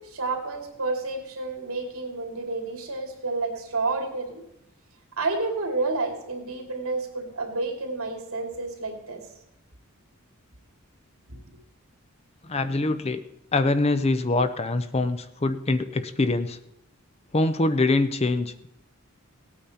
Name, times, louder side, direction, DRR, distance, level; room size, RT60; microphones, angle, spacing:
voice 1, 0.0-4.4 5.2-9.2 11.3-11.4, right 3 dB, 80° right, 2 dB, 2.7 m, -30 dB
voice 2, 12.4-13.2 13.5-16.6 17.3-18.7, left 2 dB, 30° left, 11 dB, 0.6 m, -24 dB
18.0 x 9.0 x 4.3 m, 0.82 s
head